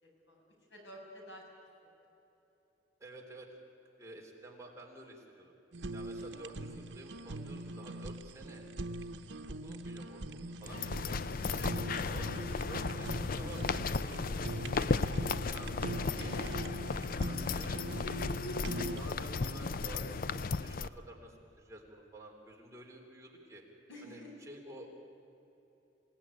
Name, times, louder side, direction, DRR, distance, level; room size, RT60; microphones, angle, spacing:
voice 1, 0.0-0.4 0.7-1.4 11.6-12.0 16.1-16.6 23.9-24.3, equal, 80° left, -1 dB, 6.8 m, -50 dB
voice 2, 3.0-3.5 4.0-5.6 5.9-8.7 9.6-11.2 12.1-14.4 14.8-15.7 16.1-17.8 18.9-23.6 24.0-24.9, right 2 dB, 15° right, -1 dB, 3.5 m, -51 dB
Fire, 5.7-19.0, right 2 dB, 90° right, 1.0 m, -42 dB
sound 1, 10.6-20.9, left 4 dB, 50° left, 0.6 m, -35 dB
27.0 x 18.0 x 9.8 m, 3.0 s
head